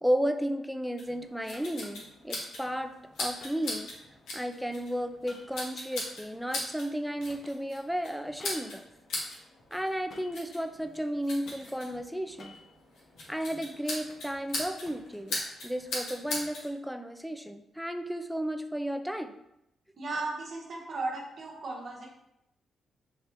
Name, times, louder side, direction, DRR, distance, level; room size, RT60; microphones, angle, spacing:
voice 1, 0.0-2.9 3.2-3.9 4.3-8.8 9.7-12.6 13.3-19.3, equal, ahead, 7 dB, 0.4 m, -33 dB
sound 1, 1.0-16.7, left 2 dB, 85° left, 1.1 m, -40 dB
sound 2, 1.5-2.1 3.4-4.4 5.3-7.0 7.3-8.9 10.1-10.5 11.0-11.7 12.2-13.5 13.8-15.2, left 2 dB, 55° left, 0.7 m, -53 dB
voice 2, 20.0-22.1, right 3 dB, 55° right, -2 dB, 1.1 m, -35 dB
3.7 x 2.8 x 3.3 m, 0.83 s
cardioid pair, 75°, 0 cm